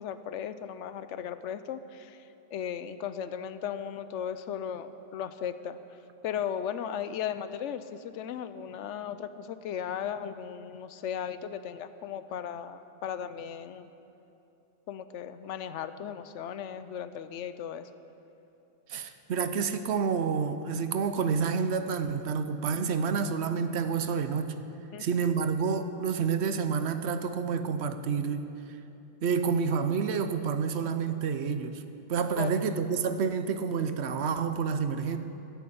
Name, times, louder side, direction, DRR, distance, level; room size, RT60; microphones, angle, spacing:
voice 1, 0.0-5.8 6.2-13.9 14.9-17.9 24.9-25.2 32.4-32.6, left 8 dB, 90° left, 12 dB, 0.9 m, -36 dB
voice 2, 18.9-24.6 25.0-28.5 29.2-31.8 32.1-35.2, right 6 dB, 70° right, 10 dB, 0.9 m, -29 dB
13.0 x 7.0 x 8.6 m, 2.8 s
omnidirectional pair, 1.2 m